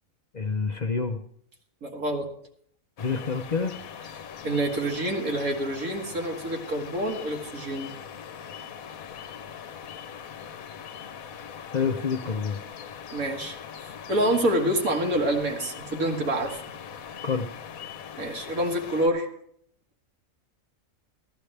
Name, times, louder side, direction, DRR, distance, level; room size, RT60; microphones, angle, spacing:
voice 1, 0.3-1.2 3.0-3.8 11.7-12.6 17.2-17.5, left 5 dB, 45° left, 5 dB, 0.6 m, -27 dB
voice 2, 1.8-2.3 4.4-7.9 13.1-13.6 14.1-16.6 18.2-19.3, right 1 dB, 85° right, 1 dB, 2.1 m, -27 dB
sound 1, 3.0-19.1, left 8 dB, 85° left, 1.2 m, -41 dB
14.0 x 13.5 x 3.3 m, 0.66 s
omnidirectional pair, 1.4 m